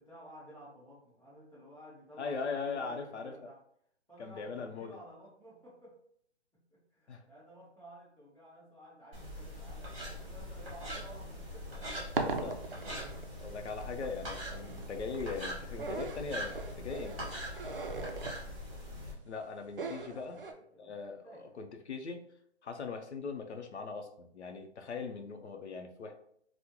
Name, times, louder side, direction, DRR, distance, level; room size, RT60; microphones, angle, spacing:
voice 1, 0.0-2.5 2.7-3.6 4.1-5.9 6.7-12.3 17.6-18.3 20.0-21.0 21.2-21.6, right 1 dB, 10° left, -19 dB, 1.4 m, -54 dB
voice 2, 2.2-3.3 4.2-4.9 7.1-7.2 12.2-12.6 13.3-17.2 19.2-20.4 20.8-22.2 22.6-26.2, left 4 dB, 70° left, 5 dB, 0.6 m, -40 dB
sound 1, 9.1-19.1, equal, 30° right, 1.1 m, -42 dB
sound 2, 11.6-20.5, right 3 dB, 50° right, 0.4 m, -40 dB
3.6 x 2.1 x 2.9 m, 0.67 s
hypercardioid pair, 175°, 35 cm